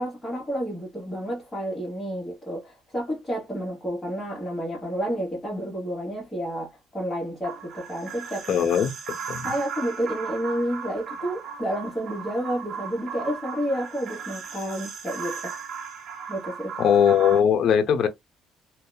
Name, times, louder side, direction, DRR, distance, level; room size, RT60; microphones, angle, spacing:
voice 1, 0.0-8.7 9.4-15.5 16.3-16.8, equal, 15° left, 1.4 m, -30 dB
sound 1, 7.4-17.4, right 6 dB, 50° right, 0.7 m, -37 dB
voice 2, 8.5-8.9 9.3-9.5 16.8-18.1, left 8 dB, 55° left, 0.6 m, -20 dB
2.8 x 2.2 x 2.3 m
cardioid pair, 110°, 0 cm